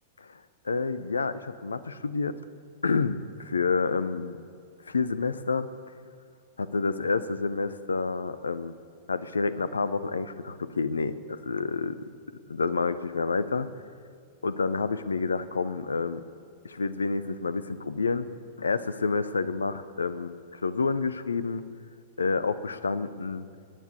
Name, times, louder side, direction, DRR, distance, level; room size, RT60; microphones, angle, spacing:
voice 1, 0.6-2.4 2.8-4.4 4.9-5.7 6.6-8.7 9.1-12.0 12.5-13.7 14.4-16.2 16.6-18.3 18.6-21.6 22.2-23.5, left 4 dB, 75° left, 14 dB, 0.7 m, -29 dB
16.0 x 9.6 x 8.3 m, 2.2 s
figure-of-eight pair, 100°, 0 cm